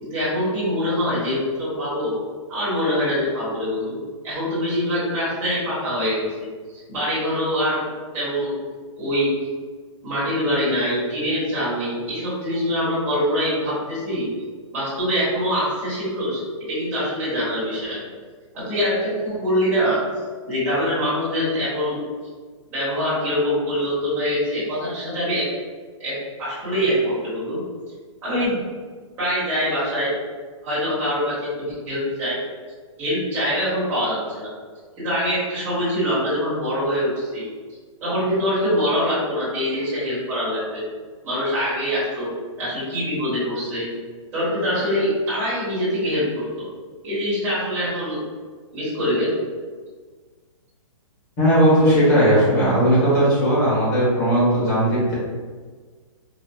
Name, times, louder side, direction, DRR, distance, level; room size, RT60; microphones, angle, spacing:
voice 1, 0.0-2.1 2.5-4.0 4.2-6.5 6.9-7.9 8.1-8.5 9.0-9.3 10.0-14.3 14.7-18.0 18.7-20.0 20.5-22.0 22.7-25.4 26.0-26.1 26.4-27.6 28.2-28.6 29.2-30.1 30.6-32.4 33.0-34.5 35.0-37.5 38.0-40.8 41.2-42.3 42.6-43.9 44.3-46.2 46.6-46.7 47.0-48.2 48.7-49.3, equal, 10° right, -13 dB, 1.2 m, -24 dB
voice 2, 51.4-55.1, equal, 30° left, -9 dB, 1.5 m, -17 dB
4.1 x 2.3 x 2.3 m, 1.5 s
hypercardioid pair, 175°, 17 cm